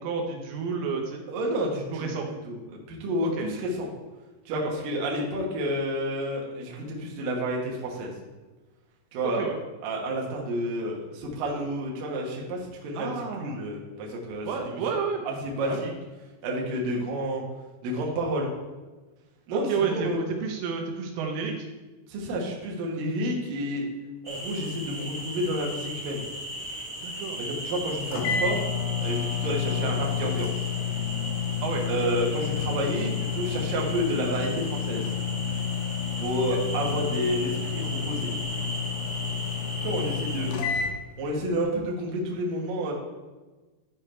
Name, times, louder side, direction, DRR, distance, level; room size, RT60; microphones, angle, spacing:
voice 1, 0.0-1.2 1.9-2.3 3.2-3.5 4.5-4.7 9.2-9.6 13.0-13.6 14.5-15.2 15.6-15.9 19.5-21.7 27.0-27.4 31.6-31.8 36.5-36.6, right 5 dB, 80° right, 2 dB, 3.5 m, -30 dB
voice 2, 1.3-2.1 2.5-2.6 2.9-3.9 4.5-8.1 9.1-9.4 9.8-14.8 15.2-15.9 16.4-17.4 17.8-18.5 19.5-20.2 22.1-23.9 24.3-26.2 27.4-28.6 29.0-30.5 31.9-35.1 36.2-38.3 39.8-40.6 41.2-42.9, equal, 60° right, -1 dB, 2.5 m, -30 dB
sound 1, 24.2-40.5, equal, 25° right, 1.0 m, -37 dB
sound 2, 27.8-27.9 28.1-40.9, left 7 dB, 90° left, 4.0 m, -30 dB
12.5 x 4.8 x 4.4 m, 1.2 s
omnidirectional pair, 5.8 m